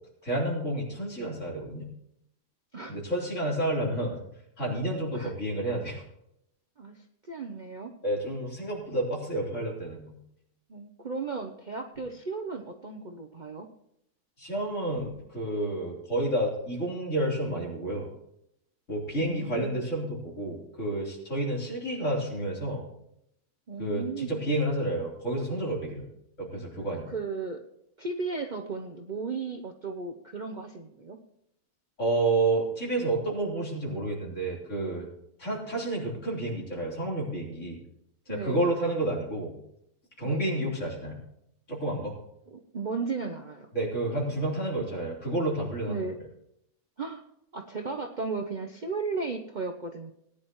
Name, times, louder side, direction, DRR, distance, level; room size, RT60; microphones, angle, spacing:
voice 1, 0.2-1.9 2.9-4.2 4.6-6.0 8.0-10.1 14.4-18.1 18.9-22.8 23.8-26.0 26.4-27.1 32.0-35.1 35.4-37.8 38.3-39.5 40.2-41.2 41.7-42.2 43.7-46.0, right 1 dB, 55° left, -3 dB, 4.2 m, -30 dB
voice 2, 6.8-7.9 10.7-13.7 19.2-19.8 23.7-24.5 26.9-27.6 28.0-31.2 38.3-38.7 40.2-40.6 42.5-43.7 45.9-46.2 47.0-47.2 47.5-50.1, right 4 dB, 40° right, 3 dB, 0.8 m, -35 dB
18.5 x 10.0 x 3.1 m, 0.77 s
omnidirectional pair, 1.5 m